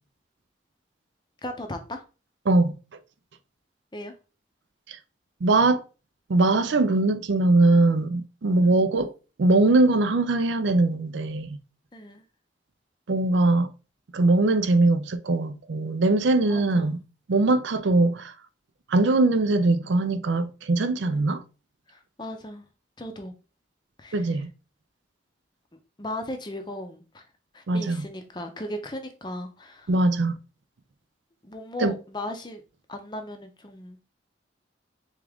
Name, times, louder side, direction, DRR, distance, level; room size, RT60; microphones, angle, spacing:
voice 1, 1.4-2.0 3.9-4.1 8.6-8.8 11.9-12.2 16.5-17.0 21.1-21.2 21.9-22.7 23.0-23.3 24.0-24.4 26.0-27.2 27.5-29.9 31.4-32.6 32.9-34.0, left 1 dB, 25° left, 0.6 m, -37 dB
voice 2, 5.4-5.8 6.3-9.1 9.4-11.6 13.1-13.7 14.1-17.0 17.3-18.3 18.9-21.4 24.1-24.5 27.7-28.1 29.9-30.4 31.8-31.9, right 2 dB, 75° right, 0.5 m, -21 dB
3.6 x 3.6 x 3.4 m
head